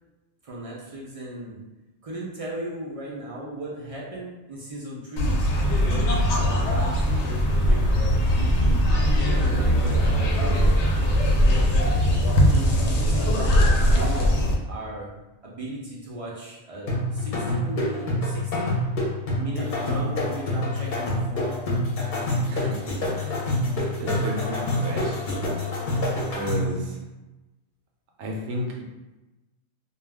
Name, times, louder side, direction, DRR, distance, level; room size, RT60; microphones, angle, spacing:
voice 1, 0.4-1.6 2.0-5.3 5.8-6.1 6.4-7.3 7.6-10.7 11.0-11.8 12.5-14.3 14.7-18.8 19.4-21.6, right 1 dB, 55° right, -5 dB, 0.3 m, -37 dB
sound 1, 5.2-14.5, equal, 85° left, 0.9 m, -20 dB
sound 2, 16.9-26.8, left 1 dB, 50° left, 0.7 m, -27 dB
voice 2, 24.0-25.2 26.3-27.0 28.2-28.7, equal, 80° right, 0 dB, 0.9 m, -32 dB
2.3 x 2.2 x 3.3 m, 1.1 s
omnidirectional pair, 1.2 m